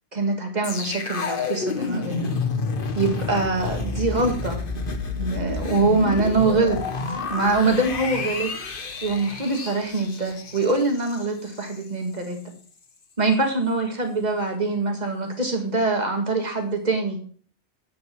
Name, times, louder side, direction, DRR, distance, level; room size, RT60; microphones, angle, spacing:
voice 1, 0.1-2.3 2.9-4.6 5.2-6.8 7.3-8.5 9.0-12.4 13.2-17.2, right 3 dB, 40° right, 3 dB, 2.3 m, -24 dB
sound 1, 0.6-11.8 12.2-12.3, left 4 dB, 55° left, 1.3 m, -30 dB
10.0 x 8.4 x 4.6 m, 0.43 s
omnidirectional pair, 1.1 m